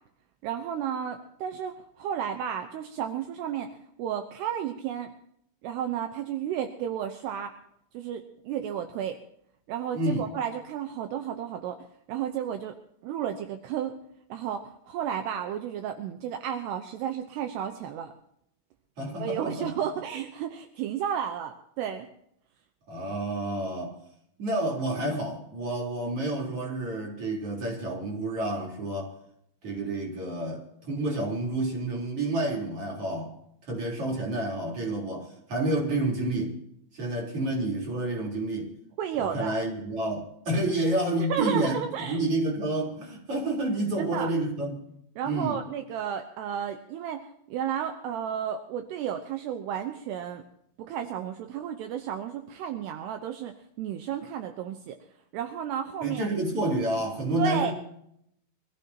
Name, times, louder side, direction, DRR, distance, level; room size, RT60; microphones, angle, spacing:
voice 1, 0.4-5.1 5.6-7.5 7.9-9.2 9.7-12.8 13.0-14.0 14.3-18.1 19.2-22.1 39.0-39.6 41.3-42.2 44.0-44.3 45.2-50.4 50.8-55.0 55.3-56.3 57.4-57.7, right 9 dB, 75° right, 6 dB, 2.9 m, -32 dB
voice 2, 9.9-10.3 19.0-19.7 22.9-24.0 24.4-29.1 29.6-33.4 33.7-36.5 36.9-38.7 39.2-44.8 45.2-45.6 56.0-57.7, right 1 dB, 35° right, -1 dB, 4.5 m, -29 dB
25.0 x 14.5 x 2.9 m, 0.72 s
omnidirectional pair, 5.0 m